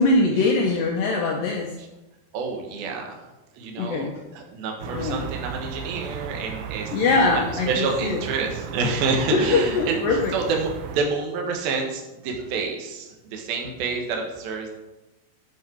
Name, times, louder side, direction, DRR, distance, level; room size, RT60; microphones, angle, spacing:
voice 1, 0.0-1.7 3.8-4.1 4.9-5.3 6.9-8.2 9.3-10.3, left 3 dB, 75° left, 0 dB, 2.0 m, -22 dB
voice 2, 2.3-3.2 3.5-14.8, right 4 dB, 65° right, 2 dB, 2.9 m, -28 dB
sound 1, 4.8-11.0, right 8 dB, 80° right, 2.5 m, -35 dB
11.5 x 5.8 x 4.5 m, 1.0 s
omnidirectional pair, 5.0 m